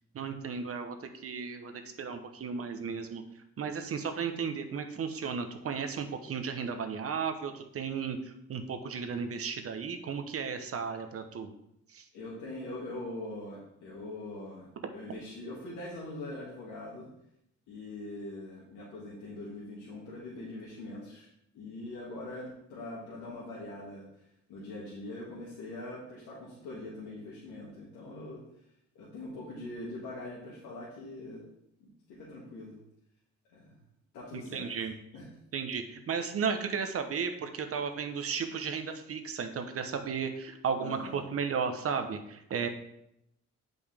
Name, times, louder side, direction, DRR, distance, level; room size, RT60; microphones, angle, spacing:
voice 1, 0.1-1.7 2.0-3.2 3.6-8.2 8.5-11.5 11.9-12.0 34.3-34.9 35.5-42.7, right 6 dB, 50° right, 6 dB, 0.9 m, -34 dB
voice 2, 12.1-17.1 17.7-21.3 21.5-24.1 24.5-28.4 29.0-31.4 31.8-32.8 33.5-33.8 34.1-34.7 35.1-35.3 40.8-41.2, left 2 dB, 90° left, -7 dB, 1.9 m, -42 dB
7.9 x 5.4 x 3.5 m, 0.77 s
cardioid pair, 90°, 30 cm